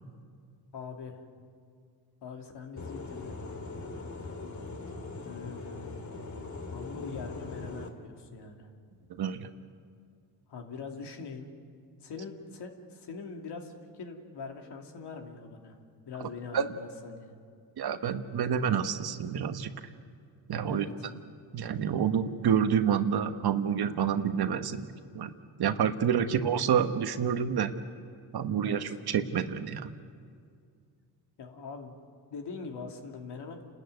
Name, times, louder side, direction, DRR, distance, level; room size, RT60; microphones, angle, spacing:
voice 1, 0.7-1.3 2.2-3.3 5.2-6.3 6.7-8.7 10.5-11.5 12.0-15.8 16.1-17.3 20.6-21.1 26.1-26.3 28.6-29.0 31.4-31.9 32.3-33.7, left 5 dB, 70° left, 3 dB, 2.8 m, -42 dB
sound 1, 2.8-7.9, left 3 dB, 40° left, 2.6 m, -41 dB
voice 2, 9.1-9.5 16.2-16.3 16.5-16.7 17.8-19.7 20.5-20.9 21.5-24.9 25.1-25.3 25.6-27.7 28.3-29.9, right 8 dB, 60° right, 9 dB, 1.3 m, -28 dB
29.5 x 13.5 x 9.3 m, 2.2 s
cardioid pair, 90°, 42 cm